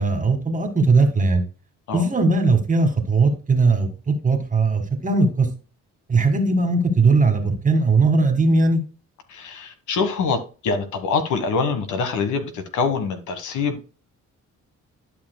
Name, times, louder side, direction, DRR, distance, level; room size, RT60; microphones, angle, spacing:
voice 1, 0.0-1.4 1.9-5.5 6.1-8.8, right 3 dB, 25° right, 1.7 m, -19 dB
voice 2, 9.3-13.8, left 5 dB, 75° left, 1.4 m, -25 dB
11.5 x 5.6 x 2.2 m
cardioid pair, 90°, 30 cm